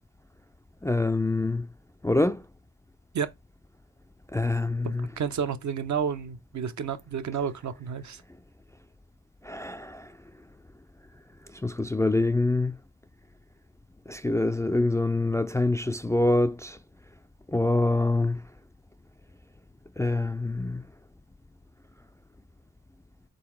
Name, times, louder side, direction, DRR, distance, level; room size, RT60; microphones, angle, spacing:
voice 1, 0.8-1.7 2.0-2.4 4.3-5.1 9.4-10.1 11.6-12.8 14.1-16.8 17.5-18.4 20.0-20.8, left 2 dB, 10° left, 0.3 m, -25 dB
voice 2, 4.8-8.2, right 7 dB, 65° right, 0.7 m, -31 dB
3.9 x 3.8 x 3.0 m
cardioid pair, 60°, 31 cm